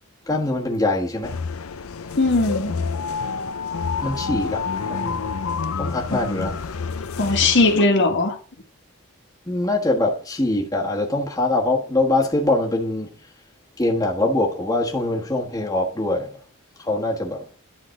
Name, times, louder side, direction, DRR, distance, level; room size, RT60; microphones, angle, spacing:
voice 1, 0.3-1.4 4.0-5.3 5.8-6.6 9.5-13.1 13.8-16.3 16.8-17.4, left 2 dB, 15° left, 1.4 m, -23 dB
sound 1, 1.2-7.9, left 5 dB, 75° left, 0.6 m, -28 dB
voice 2, 2.2-2.7 6.1-6.5 7.2-8.4, left 3 dB, 60° left, 1.8 m, -19 dB
10.5 x 3.9 x 6.4 m
head